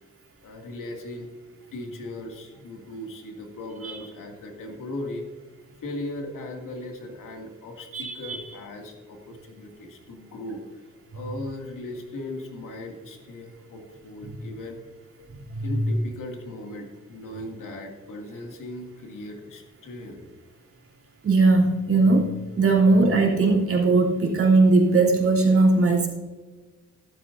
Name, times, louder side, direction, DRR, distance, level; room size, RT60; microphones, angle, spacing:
voice 1, 0.4-1.3 1.7-5.3 5.8-10.7 11.1-14.8 15.6-20.3, left 1 dB, 80° left, 2 dB, 2.3 m, -38 dB
voice 2, 7.9-8.4 15.5-15.9 21.2-26.1, right 3 dB, 45° right, -3 dB, 3.1 m, -19 dB
13.5 x 12.0 x 2.7 m, 1.3 s
cardioid pair, 115°, 32 cm